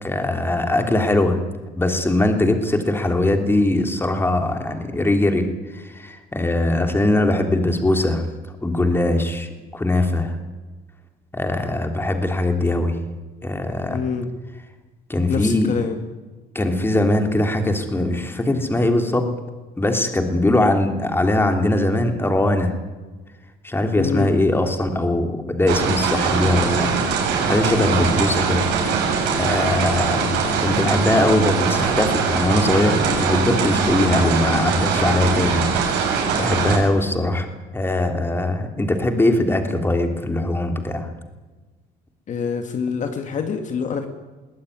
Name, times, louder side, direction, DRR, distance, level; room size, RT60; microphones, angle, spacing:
voice 1, 0.0-1.4 1.8-8.2 8.6-10.4 11.3-13.0 13.4-14.0 15.1-15.7 16.5-19.3 19.8-22.7 23.6-26.9 27.5-28.7 29.3-30.4 30.6-37.5 37.7-41.1, left 1 dB, 15° left, 5 dB, 3.3 m, -21 dB
voice 2, 13.9-14.3 15.3-16.0 23.9-24.3 42.3-44.1, left 6 dB, 45° left, 6 dB, 2.2 m, -25 dB
sound 1, 25.7-36.8, right 5 dB, 90° right, 6.7 m, -22 dB
21.5 x 17.0 x 9.7 m, 1.3 s
cardioid pair, 110°, 17 cm